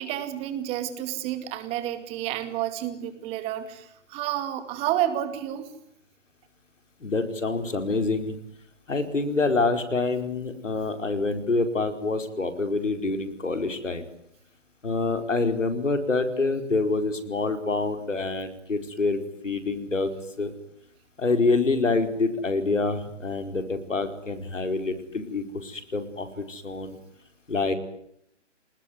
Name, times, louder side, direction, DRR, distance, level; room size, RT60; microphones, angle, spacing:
voice 1, 0.0-5.7, right 12 dB, 15° right, 10 dB, 2.3 m, -30 dB
voice 2, 7.0-8.3 8.9-14.0 14.8-19.2 19.4-20.1 20.4-20.5 21.2-27.0 27.5-27.7, left 3 dB, 85° left, 8 dB, 5.0 m, -26 dB
30.0 x 20.0 x 9.8 m, 0.74 s
hypercardioid pair, 150°, 37 cm